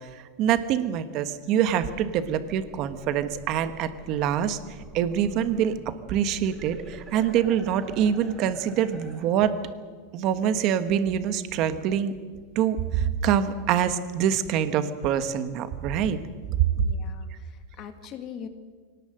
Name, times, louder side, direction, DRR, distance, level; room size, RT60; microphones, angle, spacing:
voice 1, 0.1-4.6 4.9-9.6 10.1-12.1 12.5-16.2, right 9 dB, 35° right, 11 dB, 1.4 m, -25 dB
sound 1, 1.8-9.3, right 3 dB, 10° right, 2.5 m, -47 dB
voice 2, 16.7-18.5, left 8 dB, 30° left, 8 dB, 1.9 m, -42 dB
23.5 x 18.5 x 7.8 m, 1.5 s
supercardioid pair, 170°, 0 cm